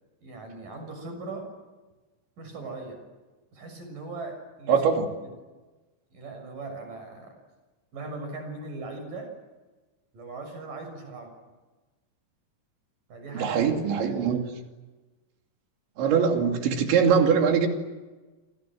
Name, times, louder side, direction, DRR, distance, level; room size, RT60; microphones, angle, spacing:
voice 1, 0.2-1.5 2.4-3.0 3.5-4.9 5.2-5.3 6.1-7.4 7.9-9.3 10.1-11.3 13.1-13.7 14.1-14.5, right 3 dB, 50° right, 4 dB, 8.1 m, -39 dB
voice 2, 4.7-5.1 13.4-14.4 16.0-17.7, right 6 dB, 90° right, 4 dB, 5.0 m, -22 dB
27.5 x 27.5 x 7.7 m, 1.2 s
omnidirectional pair, 5.1 m